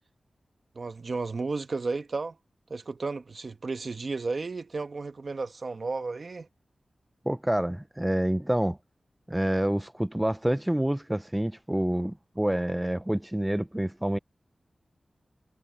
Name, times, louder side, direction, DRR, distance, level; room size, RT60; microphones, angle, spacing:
voice 1, 0.7-2.4 2.7-6.5, right 3 dB, 55° right, 1.3 m, -33 dB
voice 2, 7.3-8.8 9.3-14.2, right 1 dB, 10° right, 0.5 m, -27 dB
wide cardioid pair, 100°, 0 cm